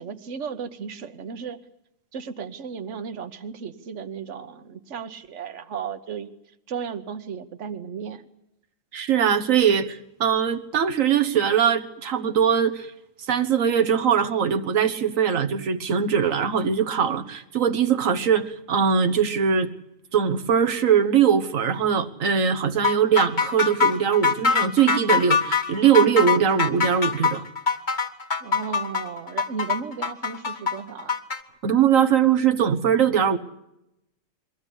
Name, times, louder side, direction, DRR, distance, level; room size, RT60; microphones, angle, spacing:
voice 1, 0.0-1.6 2.1-6.3 6.7-8.2 28.4-31.2, right 6 dB, 65° right, 9 dB, 1.4 m, -35 dB
voice 2, 8.9-12.9 13.3-19.7 20.1-27.4 31.6-33.4, right 7 dB, 85° right, 8 dB, 1.5 m, -21 dB
sound 1, 22.8-31.4, left 5 dB, 40° left, 1.5 m, -23 dB
23.0 x 15.5 x 9.9 m, 0.85 s
omnidirectional pair, 1.3 m